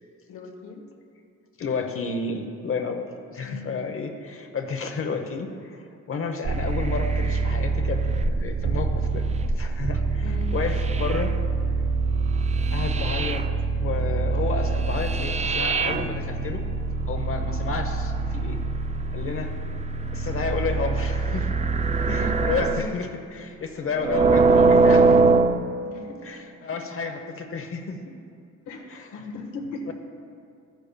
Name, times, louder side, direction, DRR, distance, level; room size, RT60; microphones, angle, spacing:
voice 1, 0.3-0.8 3.4-3.8 10.2-10.5 22.1-22.9 25.8-26.2 28.6-29.9, left 2 dB, 85° left, 2 dB, 1.3 m, -37 dB
voice 2, 1.6-3.1 3.3-9.2 9.6-11.3 12.7-13.4 13.8-16.6 17.1-18.6 19.1-19.5 20.1-21.5 22.0-25.2 26.2-28.2 28.9-29.3 29.9-30.0, left 4 dB, 45° left, 5 dB, 0.8 m, -31 dB
sound 1, 6.4-22.9 23.9-25.6, right 4 dB, 25° right, 0.4 m, -23 dB
12.5 x 10.5 x 2.2 m, 2.4 s
cardioid pair, 90°, 30 cm